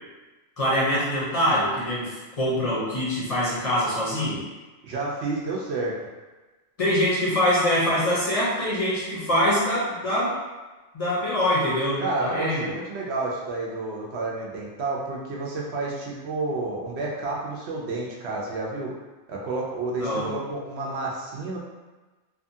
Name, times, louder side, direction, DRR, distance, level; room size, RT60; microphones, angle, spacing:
voice 1, 0.6-4.4 6.8-10.4 10.9-12.7 20.0-20.3, equal, 40° left, -7 dB, 0.6 m, -24 dB
voice 2, 4.8-6.1 12.0-18.9 19.3-21.6, right 2 dB, 70° right, -3 dB, 0.8 m, -30 dB
2.7 x 2.3 x 2.6 m, 1.2 s
omnidirectional pair, 1.2 m